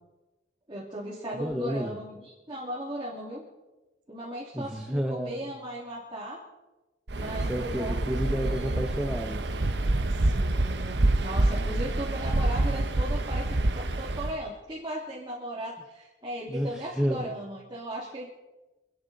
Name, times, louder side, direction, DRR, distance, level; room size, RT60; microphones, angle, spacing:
voice 1, 0.7-3.4 4.1-6.4 7.1-8.0 8.4-8.8 10.1-18.3, right 1 dB, 25° right, -6 dB, 2.5 m, -37 dB
voice 2, 1.3-2.0 4.5-5.4 7.5-9.5 16.5-17.3, equal, 5° right, 2 dB, 0.9 m, -31 dB
Waves surf, 7.1-14.4, right 2 dB, 60° right, 0.9 m, -27 dB
27.5 x 10.5 x 4.0 m, 1.1 s
head